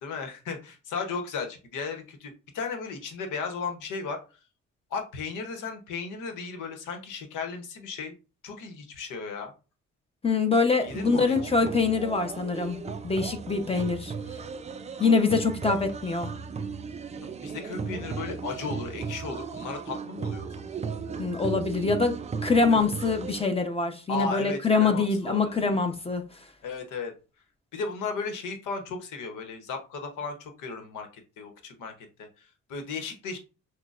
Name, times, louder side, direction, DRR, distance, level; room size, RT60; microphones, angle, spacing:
voice 1, 0.0-4.2 4.9-8.1 8.4-9.5 10.8-11.4 17.2-20.7 22.7-22.8 24.1-25.6 26.6-27.1 27.7-31.1 31.4-31.9 32.2-33.4, left 5 dB, 85° left, 1.0 m, -35 dB
voice 2, 10.2-14.1 15.0-16.3 21.2-22.2 22.4-26.2, left 4 dB, 20° left, 0.8 m, -24 dB
sound 1, 10.9-23.5, right 5 dB, 25° right, 0.4 m, -36 dB
6.1 x 2.2 x 2.5 m
cardioid pair, 90°, 30 cm